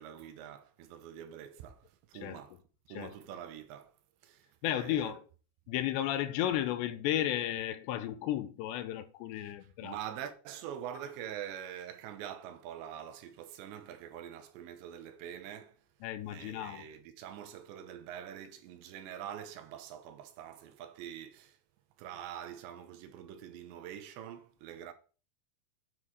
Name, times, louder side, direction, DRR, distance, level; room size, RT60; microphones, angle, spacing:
voice 1, 0.0-2.6 2.9-4.0 4.2-5.2 9.4-9.5 9.8-15.8 16.3-21.6 22.0-24.9, right 10 dB, 90° right, 3.2 m, -45 dB
voice 2, 4.6-5.2 5.7-10.0 16.0-16.8, left 12 dB, 85° left, 3.0 m, -33 dB
9.5 x 6.4 x 4.7 m
omnidirectional pair, 5.0 m